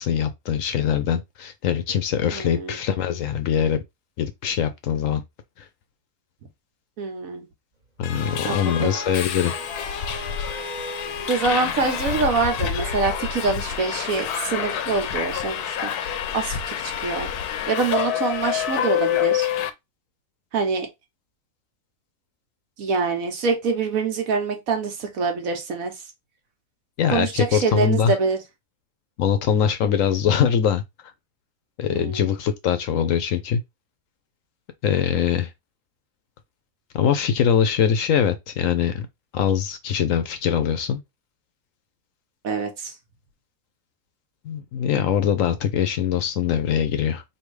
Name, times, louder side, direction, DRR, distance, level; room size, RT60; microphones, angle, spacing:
voice 1, 0.0-3.8 4.2-5.2 8.0-9.5 27.0-28.1 29.2-30.8 31.8-33.6 34.8-35.5 36.9-39.1 39.3-41.0 44.4-47.2, left 8 dB, 65° left, 0.9 m, -22 dB
voice 2, 2.3-2.8 7.0-7.5 8.4-9.0 11.3-17.3 17.7-19.5 20.5-20.9 22.8-25.9 27.1-28.4 29.8-30.0 31.9-32.3 42.4-42.9, right 4 dB, 65° right, 1.4 m, -25 dB
sound 1, 7.8-13.2, right 2 dB, 25° right, 1.4 m, -39 dB
Subway metro underground, 8.0-19.7, left 10 dB, 90° left, 1.1 m, -28 dB
3.5 x 2.6 x 4.6 m
omnidirectional pair, 1.6 m